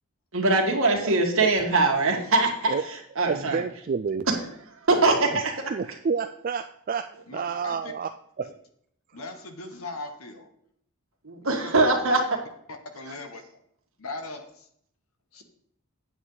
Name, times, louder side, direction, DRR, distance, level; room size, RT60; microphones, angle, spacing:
voice 1, 0.3-2.7 3.2-3.6 4.9-5.7 11.2-12.2, right 3 dB, 65° right, 1 dB, 1.9 m, -22 dB
voice 2, 3.2-4.3 5.3-5.4 5.7-8.5 9.1-9.2, right 5 dB, 40° right, 9 dB, 0.3 m, -30 dB
voice 3, 7.3-7.9 9.1-10.5 11.5-12.2 12.9-13.4 14.0-14.7 15.3-15.4, left 2 dB, 65° left, 6 dB, 1.3 m, -39 dB
9.2 x 8.2 x 3.9 m, 0.67 s
head